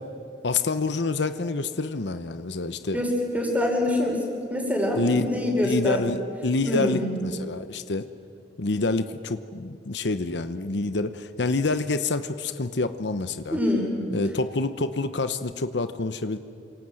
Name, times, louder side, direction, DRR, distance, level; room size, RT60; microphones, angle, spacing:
voice 1, 0.4-3.0 4.9-8.1 8.6-13.6 14.1-16.4, left 3 dB, 70° left, 11 dB, 0.9 m, -27 dB
voice 2, 2.9-6.1 6.6-7.1 13.5-14.0, left 1 dB, 10° right, 1 dB, 5.3 m, -25 dB
28.0 x 26.5 x 7.8 m, 2.6 s
head